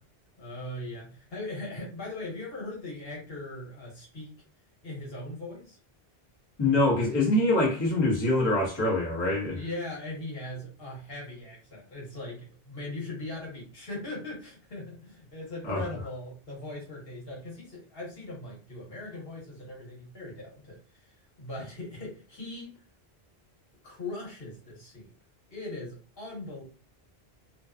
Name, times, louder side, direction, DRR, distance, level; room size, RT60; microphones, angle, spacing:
voice 1, 0.4-4.3 4.8-5.8 9.3-22.7 23.8-25.1 25.5-26.6, left 2 dB, 70° left, 1.3 m, -40 dB
voice 2, 6.6-9.6 15.6-15.8, left 2 dB, 25° left, 0.9 m, -24 dB
2.7 x 2.2 x 2.4 m
omnidirectional pair, 1.1 m